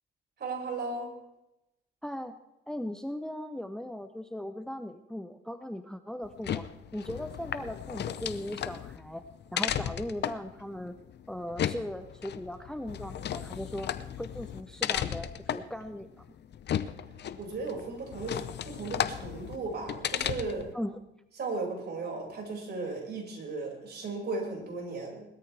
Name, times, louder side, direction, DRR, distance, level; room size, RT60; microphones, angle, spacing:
voice 1, 0.4-1.1 17.4-20.7 21.4-25.3, right 3 dB, 55° right, -1 dB, 5.8 m, -36 dB
voice 2, 2.0-2.3 2.7-6.6 6.9-9.2 9.5-10.9 11.3-16.3 20.7-21.0, left 1 dB, 5° left, 9 dB, 0.7 m, -38 dB
sound 1, 6.2-20.7, left 10 dB, 60° left, 0.8 m, -35 dB
20.0 x 13.5 x 3.4 m, 0.91 s
cardioid pair, 90°, 20 cm